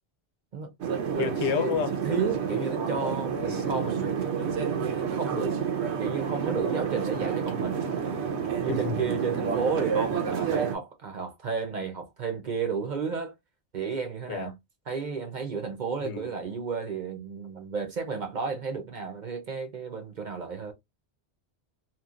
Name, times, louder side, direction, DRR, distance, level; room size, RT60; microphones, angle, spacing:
sound 1, 0.8-10.8, right 6 dB, 80° right, 1.0 m, -29 dB
voice 1, 1.2-2.0 3.4-3.7 8.7-9.1 14.3-14.5 16.0-16.3, left 6 dB, 85° left, 0.9 m, -30 dB
voice 2, 2.0-4.3 5.1-5.5 6.0-7.8 8.6-13.3 13.7-14.5 14.9-20.7, right 5 dB, 50° right, 0.7 m, -32 dB
2.9 x 2.3 x 2.3 m
omnidirectional pair, 1.1 m